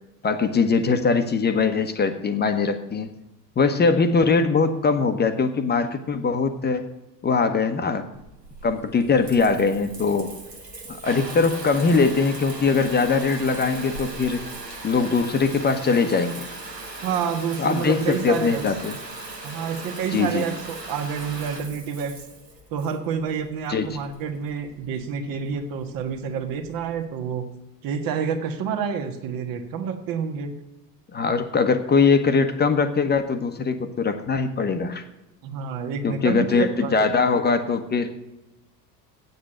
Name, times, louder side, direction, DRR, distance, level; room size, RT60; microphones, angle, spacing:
voice 1, 0.2-3.1 3.6-6.9 7.2-8.0 8.6-10.3 10.9-14.4 14.8-16.3 17.6-19.0 20.1-20.4 23.7-23.9 31.1-35.0 36.0-38.1, left 4 dB, 20° left, 8 dB, 1.0 m, -21 dB
Water tap faucet / Bathtub (filling or washing) / Trickle dribble, 8.1-27.0, right 2 dB, 90° right, 1.2 m, -39 dB
voice 2, 17.0-18.6 19.4-22.2 22.7-27.5 27.8-30.5 35.4-36.9, right 7 dB, 45° right, 8 dB, 1.5 m, -28 dB
8.7 x 8.2 x 8.8 m, 0.94 s
figure-of-eight pair, 65°, 48 cm